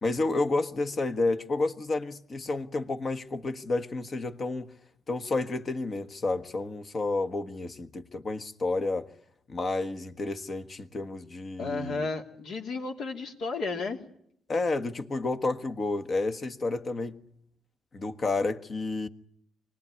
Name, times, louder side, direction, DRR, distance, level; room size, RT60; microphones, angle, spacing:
voice 1, 0.0-4.7 5.1-9.1 9.5-12.1 14.5-17.2 17.9-19.1, left 3 dB, 40° left, 1.4 m, -30 dB
voice 2, 11.6-14.0, left 3 dB, 70° left, 2.7 m, -33 dB
24.5 x 19.0 x 9.8 m
cardioid pair, 90°, 0 cm